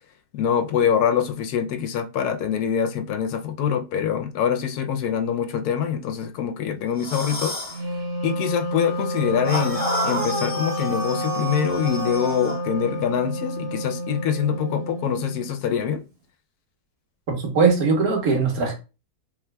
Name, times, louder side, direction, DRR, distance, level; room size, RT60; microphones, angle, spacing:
voice 1, 0.3-7.5 7.8-7.9 8.2-16.0, left 8 dB, 80° left, 1.1 m, -24 dB
sound 1, 7.0-7.8 9.4-12.6, left 1 dB, 5° left, 1.2 m, -29 dB
Wind instrument woodwind instrument, 7.7-15.5, equal, 60° right, 1.4 m, -30 dB
voice 2, 17.3-18.7, right 4 dB, 75° right, 1.5 m, -20 dB
4.7 x 3.1 x 2.2 m
omnidirectional pair, 1.6 m